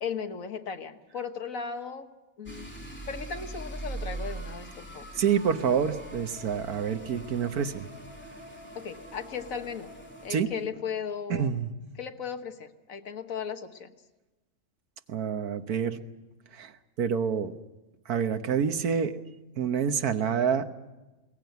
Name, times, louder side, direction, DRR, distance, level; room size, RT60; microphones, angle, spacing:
voice 1, 0.0-2.1 2.4-2.7 3.1-5.1 8.7-9.9 10.2-11.5 12.0-13.9, left 6 dB, 65° left, 7 dB, 1.6 m, -36 dB
sound 1, 2.5-10.4, right 2 dB, 5° left, 3.3 m, -42 dB
sound 2, 5.2-11.0, equal, 40° right, 3.7 m, -49 dB
voice 2, 5.2-7.9 10.3-10.5 11.3-11.7 15.1-16.0 16.5-16.7 17.0-17.5 18.1-19.2 19.6-20.7, right 7 dB, 80° right, 9 dB, 1.6 m, -27 dB
21.5 x 17.5 x 9.3 m, 1.1 s
omnidirectional pair, 1.6 m